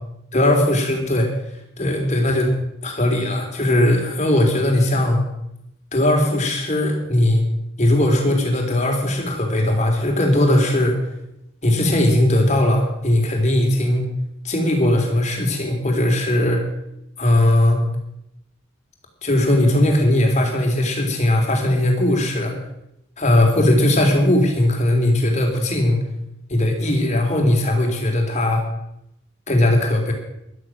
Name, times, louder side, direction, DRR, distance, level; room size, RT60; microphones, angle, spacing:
voice 1, 0.3-1.3 1.8-2.5 2.8-5.2 5.9-7.4 7.8-11.0 11.6-14.0 14.4-16.6 17.2-17.8 19.2-22.5 23.2-26.0 26.5-28.6 29.5-30.1, left 1 dB, 30° left, 2 dB, 3.4 m, -18 dB
13.5 x 12.5 x 6.2 m, 0.82 s
head